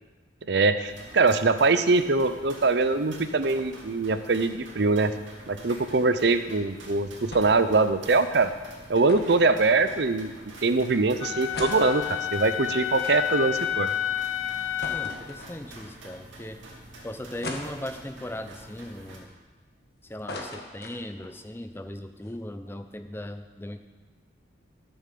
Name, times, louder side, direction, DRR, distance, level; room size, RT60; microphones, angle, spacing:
voice 1, 0.5-5.1 5.5-8.5 8.9-10.3 10.6-13.9, right 3 dB, 60° right, 11 dB, 0.6 m, -23 dB
sound 1, 0.8-19.2, right 1 dB, 80° right, 2.4 m, -47 dB
sound 2, 7.3-7.7 8.0-8.1 9.1-10.3 10.9-11.0 11.3-13.7 14.1-14.2 14.8-15.9 16.5-16.6 17.4-18.3 18.8-19.8 20.0-21.4 21.7-21.8 22.1-22.3, left 1 dB, 55° left, 1.7 m, -39 dB
Wind instrument woodwind instrument, 11.2-15.3, left 10 dB, 85° left, 0.5 m, -30 dB
voice 2, 14.9-16.6 17.0-19.4 20.1-23.8, left 1 dB, 10° left, 8 dB, 0.5 m, -38 dB
12.5 x 7.0 x 6.8 m, 1.3 s
head